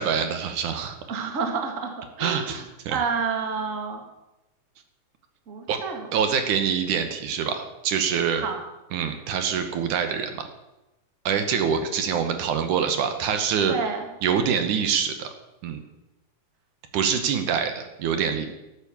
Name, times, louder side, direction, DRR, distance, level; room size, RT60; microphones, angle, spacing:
voice 1, 0.0-1.0 2.2-3.0 5.7-5.8 6.1-8.4 8.9-10.5 11.3-13.8 14.2-15.3 15.6-15.8 16.9-18.5, right 7 dB, 70° right, 7 dB, 2.5 m, -25 dB
voice 2, 1.1-1.9 2.2-4.0 5.5-6.1 8.3-8.6 13.7-14.1, right 5 dB, 35° right, 4 dB, 1.5 m, -29 dB
13.5 x 8.2 x 7.1 m, 0.97 s
omnidirectional pair, 3.8 m